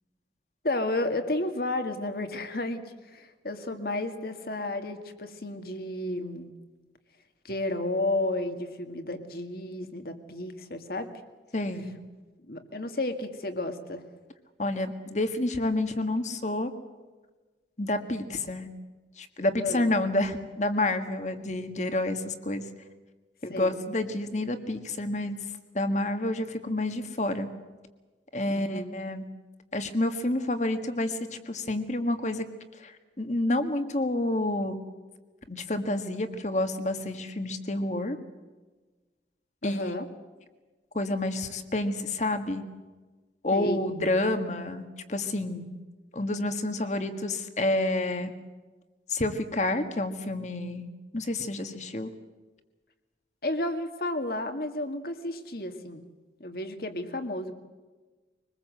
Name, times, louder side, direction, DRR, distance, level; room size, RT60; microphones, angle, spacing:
voice 1, 0.6-6.5 7.4-11.1 12.5-14.0 19.6-19.9 23.5-23.7 28.5-28.9 39.6-40.1 43.5-43.8 53.4-56.0 56.4-57.5, left 2 dB, 55° left, 7 dB, 2.1 m, -32 dB
voice 2, 11.5-11.9 14.6-16.7 17.8-18.7 19.2-22.6 23.4-25.4 25.7-27.5 28.3-29.2 29.7-32.5 32.8-34.8 35.5-38.2 39.6-39.8 40.9-42.6 43.4-45.7 46.1-48.3 49.1-50.9 51.1-52.1, left 1 dB, 40° left, 8 dB, 1.7 m, -29 dB
24.0 x 20.5 x 7.8 m, 1.3 s
head